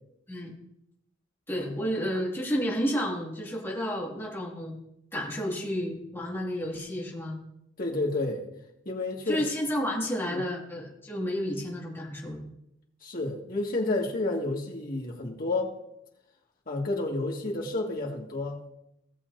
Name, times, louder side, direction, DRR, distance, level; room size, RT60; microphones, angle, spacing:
voice 1, 1.5-4.8 5.1-7.4 9.3-12.4, equal, 10° left, -3 dB, 2.2 m, -31 dB
voice 2, 7.8-8.4 8.9-9.4 10.3-10.4 13.0-15.8 16.7-18.6, left 2 dB, 50° left, -1 dB, 1.9 m, -30 dB
17.5 x 7.3 x 2.7 m, 0.81 s
head